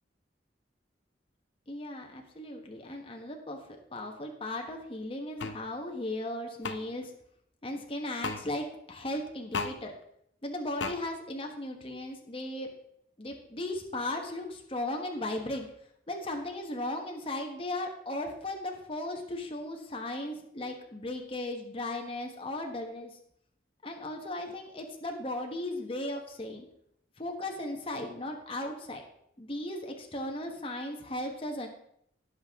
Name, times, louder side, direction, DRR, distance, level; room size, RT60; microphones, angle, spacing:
voice 1, 1.7-7.1 7.6-9.9 10.4-12.7 13.2-15.7 16.1-23.2 23.8-26.7 27.2-29.0 29.4-31.7, left 1 dB, 30° left, 2 dB, 1.3 m, -36 dB
sound 1, 5.4-5.6 6.6-6.8 8.2-8.4 9.5-9.7 10.8-11.0, left 4 dB, 85° left, 0.9 m, -33 dB
17.0 x 6.4 x 3.6 m, 0.72 s
head